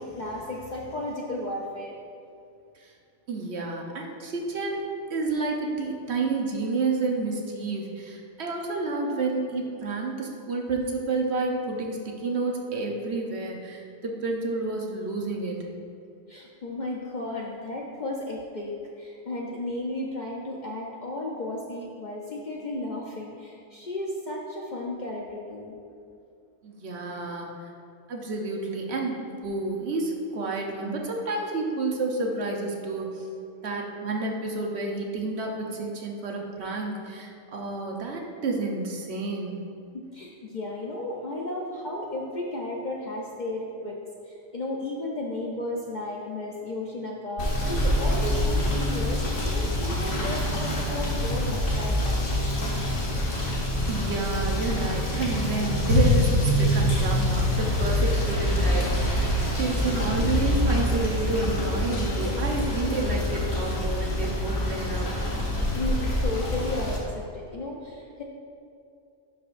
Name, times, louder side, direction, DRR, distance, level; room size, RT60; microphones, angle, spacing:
voice 1, 0.0-1.9 16.3-25.8 39.9-44.0 44.3-52.7 65.8-68.2, left 2 dB, 50° left, -2 dB, 0.6 m, -34 dB
voice 2, 3.3-15.7 26.6-27.7 28.1-33.3 33.6-39.6 53.9-59.3 59.6-65.1, right 3 dB, 60° right, 1 dB, 1.0 m, -30 dB
Rain / Motor vehicle (road), 47.4-67.0, left 1 dB, 65° left, 1.6 m, -25 dB
11.5 x 5.1 x 2.5 m, 2.5 s
omnidirectional pair, 1.4 m